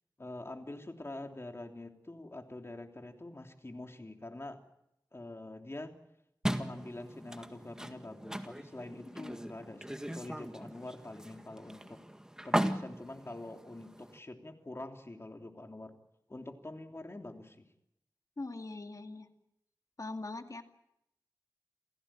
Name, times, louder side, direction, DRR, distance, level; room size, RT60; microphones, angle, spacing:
voice 1, 0.2-4.6 5.1-5.9 6.6-12.0 12.4-15.9 16.3-17.7, left 2 dB, 35° left, 5 dB, 3.2 m, -45 dB
sound 1, 6.4-14.2, equal, 10° right, 1.8 m, -38 dB
voice 2, 9.0-9.4 18.4-19.3 20.0-20.6, left 2 dB, 50° left, 6 dB, 2.3 m, -42 dB
28.5 x 16.5 x 8.9 m, 0.82 s
wide cardioid pair, 55°, 7 cm